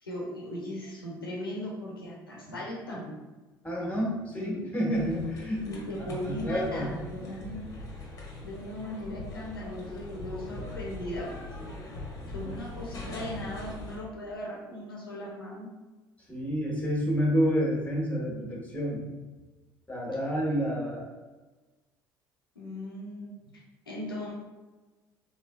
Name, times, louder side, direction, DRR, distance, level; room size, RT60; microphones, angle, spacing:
voice 1, 0.0-3.2 4.4-4.7 5.7-7.7 8.4-11.4 12.3-15.7 22.6-23.3 23.9-24.3, left 1 dB, 85° left, -3 dB, 0.6 m, -38 dB
voice 2, 3.6-5.6 6.2-6.9 12.4-12.6 16.3-19.0 19.9-21.1, equal, 10° left, -3 dB, 1.3 m, -29 dB
sound 1, 4.9-14.0, left 2 dB, 30° left, 1.0 m, -41 dB
3.7 x 3.1 x 2.2 m, 1.2 s
figure-of-eight pair, 60°, 12 cm